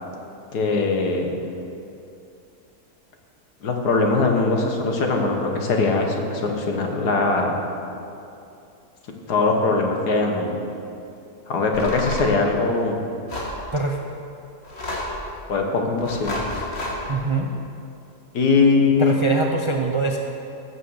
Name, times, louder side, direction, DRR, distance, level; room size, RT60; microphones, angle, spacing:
voice 1, 0.5-1.3 3.6-7.6 9.3-10.6 11.5-13.1 15.5-16.4 18.3-19.1, left 3 dB, 85° left, 2 dB, 1.9 m, -21 dB
sound 1, 11.7-12.3 13.3-13.6 14.6-15.2 16.0-17.0, left 1 dB, 40° left, 1.9 m, -30 dB
voice 2, 17.1-17.5 19.0-20.2, right 3 dB, 40° right, 1 dB, 0.4 m, -23 dB
15.5 x 6.4 x 6.4 m, 2.7 s
omnidirectional pair, 1.7 m